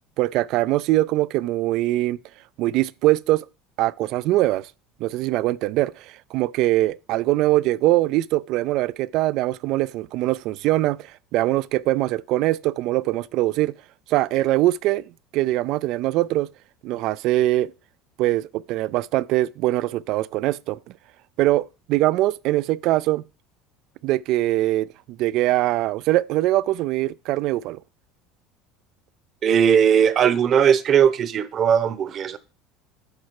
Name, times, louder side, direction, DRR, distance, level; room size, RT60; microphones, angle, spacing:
voice 1, 0.2-2.2 2.6-3.4 3.8-4.7 5.0-13.7 14.1-15.0 15.3-16.5 16.8-17.7 18.2-20.8 21.4-23.2 24.0-27.8, right 16 dB, 65° right, 0.4 m, -22 dB
voice 2, 29.4-32.4, right 8 dB, 45° right, 0.9 m, -18 dB
11.5 x 4.8 x 4.8 m
supercardioid pair, 105°, 0 cm